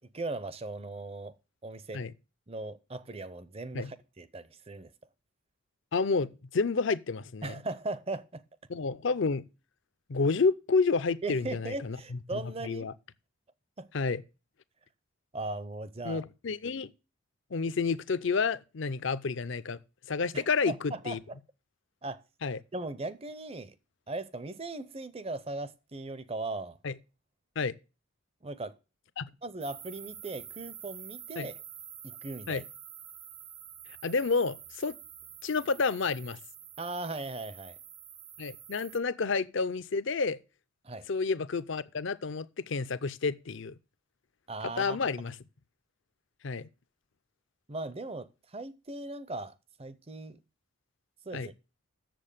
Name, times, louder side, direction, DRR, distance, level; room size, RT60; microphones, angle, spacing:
voice 1, 0.0-1.3 1.6-2.0 2.5-4.9 7.4-8.4 11.2-12.9 13.8-13.9 15.3-16.2 20.3-21.4 22.0-22.2 22.7-23.7 24.1-26.8 28.4-28.8 29.4-31.5 32.0-32.6 36.8-37.8 40.8-41.1 44.5-45.0 47.7-50.4 51.3-51.5, right 2 dB, 25° right, 0.6 m, -38 dB
voice 2, 5.9-7.5 8.7-9.4 10.1-12.2 12.6-12.9 13.9-14.2 16.0-16.9 17.5-19.8 20.1-21.2 22.4-22.6 26.8-26.9 27.6-27.7 29.2-29.3 31.4-31.5 32.5-32.6 34.0-35.0 35.4-36.4 38.4-40.4 41.1-43.8 44.8-45.3 46.4-46.7 51.3-51.5, left 4 dB, 60° left, 0.5 m, -30 dB
sound 1, 29.6-39.0, right 9 dB, 90° right, 1.3 m, -48 dB
7.6 x 7.1 x 6.6 m
head